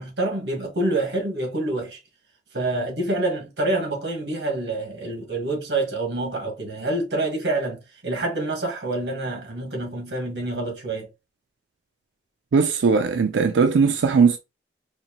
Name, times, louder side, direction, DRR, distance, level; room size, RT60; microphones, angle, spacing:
voice 1, 0.0-2.0 2.5-11.1, right 2 dB, 70° right, 1.4 m, -27 dB
voice 2, 12.5-14.4, right 5 dB, 85° right, 0.4 m, -19 dB
4.4 x 2.6 x 2.8 m
head